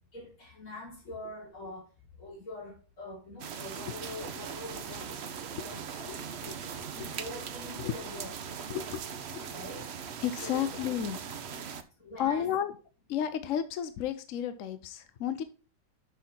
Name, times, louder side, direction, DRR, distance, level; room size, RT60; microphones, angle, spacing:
voice 1, 0.1-1.8 2.2-6.2 6.6-8.3 9.5-9.9 10.4-10.7 12.0-12.5, left 2 dB, 50° left, 4.2 m, -44 dB
sound 1, 3.4-11.8, right 7 dB, 55° right, 0.7 m, -40 dB
voice 2, 8.7-9.0 9.3-9.5 10.2-11.2 11.6-11.8 12.2-12.7 13.1-15.4, left 10 dB, 65° left, 0.8 m, -32 dB
6.4 x 5.7 x 4.2 m
omnidirectional pair, 1.9 m